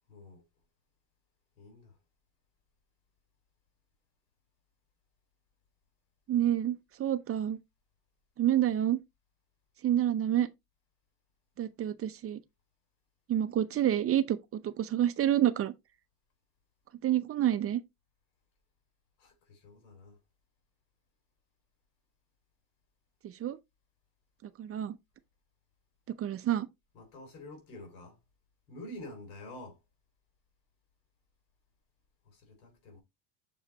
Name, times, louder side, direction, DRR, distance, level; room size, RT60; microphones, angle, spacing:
voice 1, 0.1-0.5 1.6-2.0 19.2-20.2 26.9-28.2 28.7-29.8 32.2-33.0, left 1 dB, 85° left, 3.9 m, -48 dB
voice 2, 6.3-7.6 8.4-9.0 9.8-10.5 11.6-12.4 13.3-15.7 17.0-17.8 23.2-23.6 24.4-25.0 26.1-26.7, right 11 dB, 35° right, 0.7 m, -28 dB
7.1 x 4.8 x 3.0 m
supercardioid pair, 120°, 41 cm